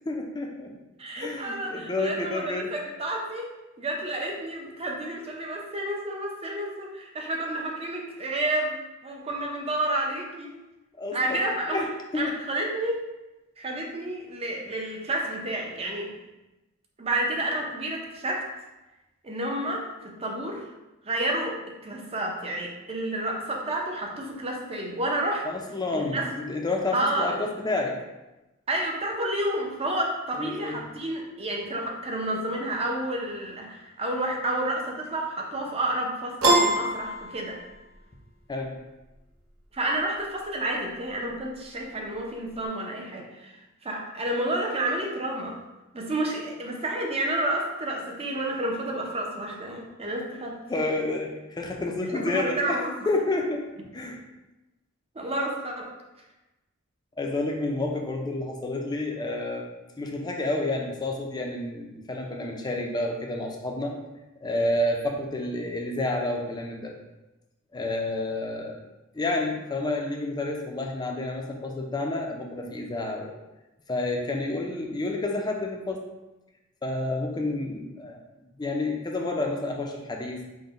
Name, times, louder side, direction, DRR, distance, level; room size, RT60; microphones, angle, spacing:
voice 1, 0.1-0.7 1.1-2.7 11.0-12.3 25.4-28.0 30.4-30.8 38.5-38.8 50.7-53.7 53.9-54.2 57.2-59.7 60.0-64.0 64.4-67.0 67.7-68.8 69.1-73.3 73.9-76.1 76.8-78.2 78.6-80.4, left 2 dB, 20° left, 1 dB, 0.4 m, -29 dB
voice 2, 1.0-3.5 3.8-8.8 9.0-10.5 11.1-11.9 12.1-13.0 13.6-16.1 17.0-18.4 19.2-20.7 21.0-25.5 25.9-26.3 26.9-27.4 28.7-37.6 39.7-43.5 43.8-45.6 45.9-50.6 52.1-53.1 55.1-55.9, right 1 dB, 30° right, 0 dB, 0.6 m, -30 dB
Piano, 36.4-38.0, right 1 dB, 80° right, 0.8 m, -23 dB
3.8 x 2.2 x 4.0 m, 1.0 s
head